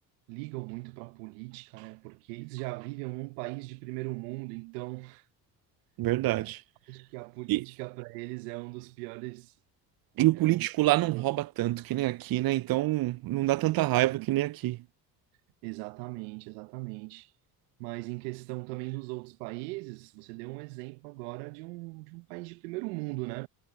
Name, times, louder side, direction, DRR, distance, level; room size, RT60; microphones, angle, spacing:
voice 1, 0.3-5.2 6.9-9.5 10.3-11.3 13.6-14.4 15.6-17.3 17.8-23.5, right 25 dB, 80° right, 1.0 m, -39 dB
voice 2, 6.0-6.6 7.5-7.6 10.2-14.8, right 17 dB, 50° right, 0.5 m, -26 dB
hypercardioid pair, 65°, 47 cm